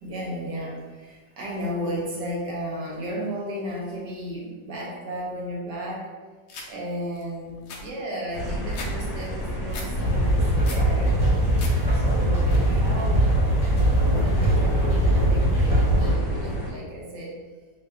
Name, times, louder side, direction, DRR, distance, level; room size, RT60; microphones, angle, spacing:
voice 1, 0.0-6.1 6.6-11.2 11.9-13.4 14.0-17.4, equal, 70° right, -4 dB, 1.5 m, -34 dB
sound 1, 6.5-6.7 7.2-7.3 7.5-8.9 9.2-9.9 10.3-10.9 11.3-11.7 12.1-12.6, left 3 dB, 70° left, 0.8 m, -39 dB
sound 2, 8.3-16.7, equal, 45° left, 1.2 m, -31 dB
sound 3, 9.9-16.2, right 1 dB, 5° right, 1.2 m, -21 dB
3.7 x 2.3 x 3.3 m, 1.4 s
omnidirectional pair, 2.0 m